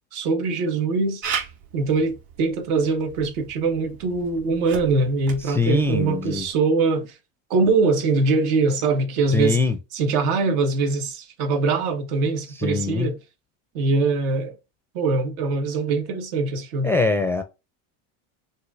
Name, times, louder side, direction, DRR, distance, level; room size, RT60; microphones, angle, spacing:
voice 1, 0.1-1.2 1.7-7.2 7.5-9.6 9.9-13.2 13.7-14.6 14.9-16.9, right 3 dB, 80° right, 1.9 m, -22 dB
Camera, 1.2-6.6, right 7 dB, 50° right, 2.4 m, -37 dB
voice 2, 5.4-6.5 9.3-9.8 12.6-13.1 16.8-17.4, left 3 dB, 5° left, 0.4 m, -22 dB
6.4 x 2.7 x 2.6 m
supercardioid pair, 130°, 44 cm